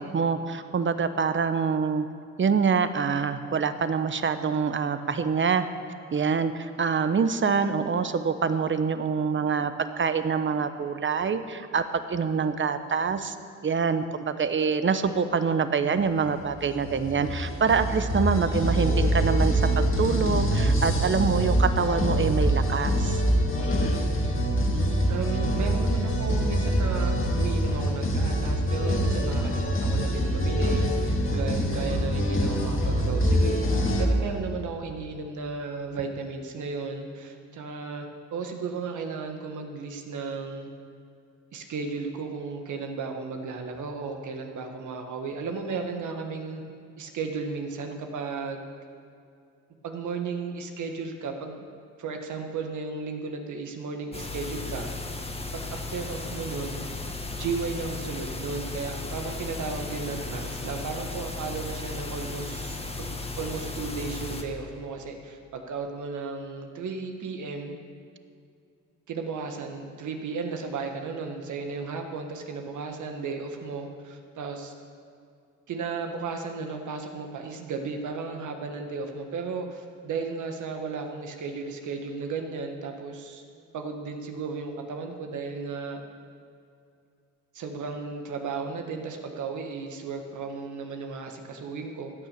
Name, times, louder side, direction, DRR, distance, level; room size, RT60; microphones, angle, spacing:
voice 1, 0.0-2.1 2.4-5.6 6.1-9.7 10.0-13.3 13.6-23.2, right 5 dB, 40° right, 11 dB, 1.0 m, -25 dB
sound 1, 16.4-34.0, equal, 40° left, 2.1 m, -25 dB
voice 2, 24.7-40.7 41.5-46.6 47.0-48.7 49.8-51.6 52.0-54.9 55.5-56.9 57.3-63.1 63.4-67.7 69.1-74.7 75.7-83.4 83.7-86.0 87.5-92.1, right 4 dB, 70° right, 4 dB, 1.6 m, -34 dB
sound 2, 54.1-64.4, left 3 dB, 20° left, 1.7 m, -35 dB
15.5 x 9.3 x 6.7 m, 2.4 s
cardioid pair, 75°, 31 cm